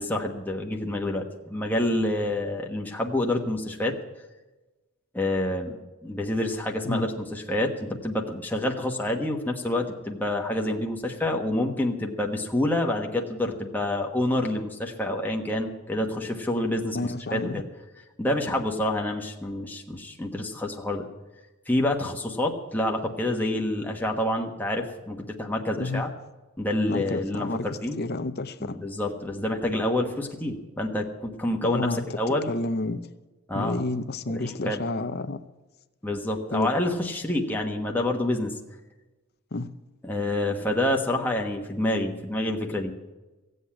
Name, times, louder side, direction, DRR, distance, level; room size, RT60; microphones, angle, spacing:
voice 1, 0.0-3.9 5.1-5.8 6.0-17.6 18.2-21.1 21.7-26.1 26.6-28.0 28.6-32.5 33.5-33.8 34.3-34.8 36.0-38.5 40.0-42.9, left 1 dB, 10° left, 0 dB, 1.2 m, -28 dB
voice 2, 16.9-17.6 25.8-26.0 26.9-27.7 28.0-28.8 31.6-32.2 32.5-33.0 33.5-35.4 36.5-36.7 39.5-39.7, left 2 dB, 45° left, 11 dB, 0.7 m, -30 dB
16.5 x 8.0 x 8.6 m, 1.1 s
head